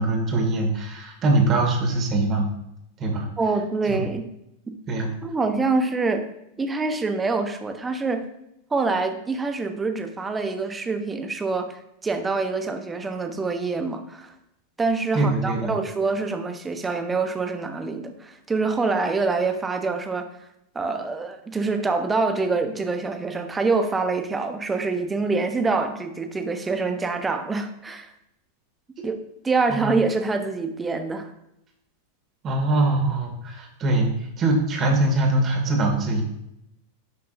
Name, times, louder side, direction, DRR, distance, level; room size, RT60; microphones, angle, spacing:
voice 1, 0.0-2.5 3.0-3.3 3.9-4.0 4.9-5.1 15.1-15.8 29.7-29.9 32.4-36.2, right 2 dB, 30° right, 2 dB, 2.2 m, -22 dB
voice 2, 3.4-4.3 5.2-6.2 6.6-8.3 8.7-14.3 14.8-20.3 20.7-28.1 29.0-29.2 29.4-31.3, right 3 dB, 15° right, 7 dB, 1.0 m, -25 dB
10.5 x 5.8 x 2.7 m, 0.81 s
figure-of-eight pair, 90°, 0 cm